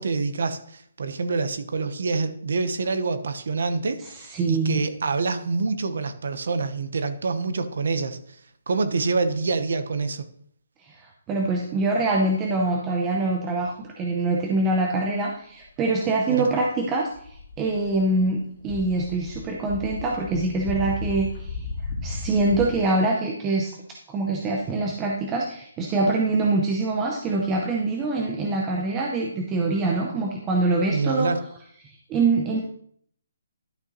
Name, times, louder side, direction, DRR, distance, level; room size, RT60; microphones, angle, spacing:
voice 1, 0.0-8.4 8.7-10.3 16.3-16.5 30.9-31.4, right 4 dB, 60° right, 10 dB, 0.9 m, -26 dB
voice 2, 4.3-4.8 10.8-21.6 22.0-23.7 24.1-31.3 31.8-32.6, right 2 dB, 10° right, 0 dB, 0.6 m, -24 dB
sound 1, 17.1-18.2 18.6-22.8, left 3 dB, 35° left, 2.3 m, -34 dB
11.5 x 6.2 x 3.0 m, 0.63 s
hypercardioid pair, 175°, 0 cm